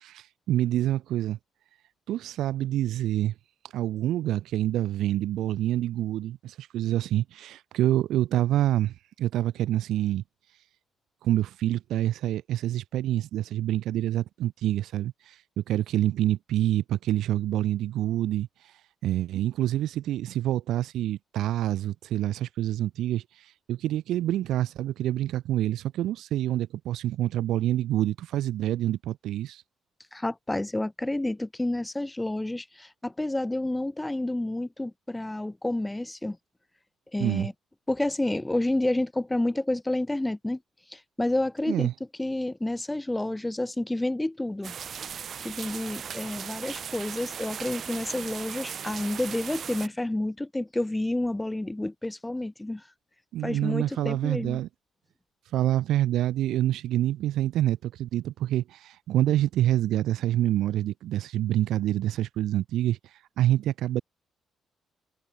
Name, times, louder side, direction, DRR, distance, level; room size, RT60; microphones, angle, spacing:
voice 1, 0.0-1.4 2.1-3.3 3.7-10.2 11.2-18.5 19.0-29.6 37.2-37.5 41.7-41.9 53.3-54.7 55.5-63.0 63.4-64.0, right 13 dB, 80° right, 3.9 m, -27 dB
voice 2, 30.1-36.4 37.1-37.5 37.9-40.6 40.9-41.9 42.2-44.7 45.4-52.8 53.4-54.6, left 1 dB, 10° left, 7.7 m, -29 dB
sound 1, 44.6-49.9, right 7 dB, 55° right, 2.4 m, -38 dB
cardioid pair, 90°, 0 cm